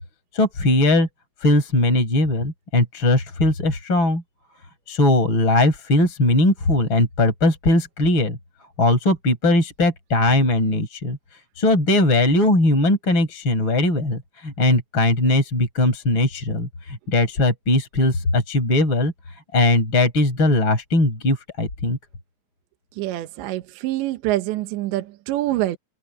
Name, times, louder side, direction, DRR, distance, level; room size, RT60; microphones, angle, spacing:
voice 1, 0.3-1.1 1.4-4.2 4.9-8.4 8.8-11.2 11.6-19.1 19.5-22.0, left 2 dB, 25° left, 6.0 m, -19 dB
voice 2, 23.0-25.8, right 15 dB, 75° right, 3.2 m, -25 dB
open air
omnidirectional pair, 5.7 m